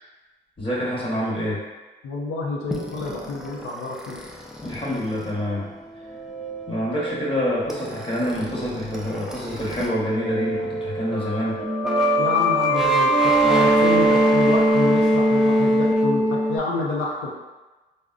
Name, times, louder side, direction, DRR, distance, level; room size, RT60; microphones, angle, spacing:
voice 1, 0.6-1.6 4.6-5.7 6.7-11.6, equal, 25° left, -6 dB, 1.1 m, -26 dB
voice 2, 2.0-4.2 12.2-17.3, left 2 dB, 85° left, -4 dB, 0.6 m, -28 dB
sound 1, 2.7-9.9 10.2-16.6, right 1 dB, ahead, 0.4 m, -23 dB
3.5 x 2.1 x 2.4 m, 1.2 s
cardioid pair, 90°, 20 cm